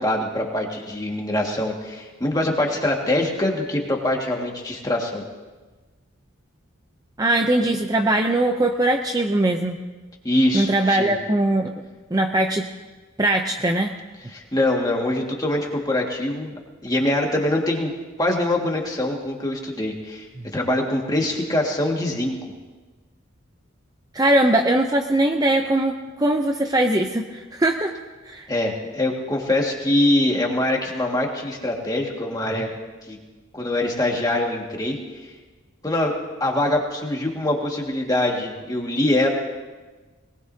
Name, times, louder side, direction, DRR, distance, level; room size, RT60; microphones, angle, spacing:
voice 1, 0.0-5.2 10.2-11.2 14.3-16.5 16.8-17.9 18.2-20.3 20.5-22.3 28.5-32.7 33.1-33.2 33.5-35.2 35.8-36.1 36.4-39.3, left 1 dB, 15° left, 0 dB, 1.8 m, -23 dB
voice 2, 7.2-9.8 10.5-11.7 12.1-12.7 13.2-13.9 20.4-20.5 24.1-27.9 28.2-28.5 32.5-32.6, right 1 dB, 20° right, 4 dB, 0.5 m, -21 dB
22.0 x 19.5 x 2.8 m, 1.3 s
head